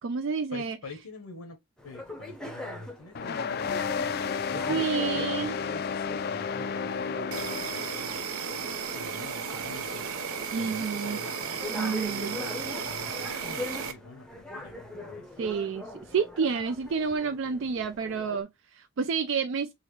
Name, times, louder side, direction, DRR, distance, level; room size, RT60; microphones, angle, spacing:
voice 1, 0.0-0.8 4.7-5.5 10.5-11.2 11.7-12.4 15.4-19.7, right 5 dB, 55° right, 0.3 m, -29 dB
voice 2, 0.5-1.6 1.8-4.9 5.3-6.5 6.8-10.1 10.6-11.3 12.1-15.3, left 3 dB, 85° left, 0.9 m, -46 dB
sound 1, 1.8-18.4, left 1 dB, 5° left, 0.6 m, -42 dB
sound 2, 3.1-8.2, left 6 dB, 45° left, 0.3 m, -32 dB
Insect, 7.3-13.9, right 6 dB, 75° right, 0.7 m, -34 dB
4.0 x 2.9 x 3.1 m
head